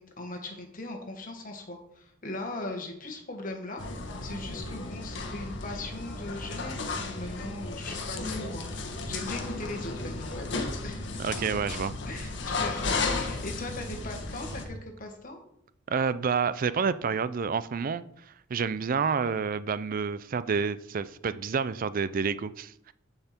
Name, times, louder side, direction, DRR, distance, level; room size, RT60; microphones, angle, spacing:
voice 1, 0.0-11.2 12.1-15.4, left 2 dB, 45° left, 3 dB, 1.7 m, -39 dB
sound 1, 3.8-14.6, left 3 dB, 60° left, 1.3 m, -34 dB
voice 2, 11.2-11.9 15.9-18.0 18.5-22.7, right 5 dB, 45° right, 15 dB, 0.4 m, -29 dB
10.5 x 5.7 x 4.4 m, 0.74 s
head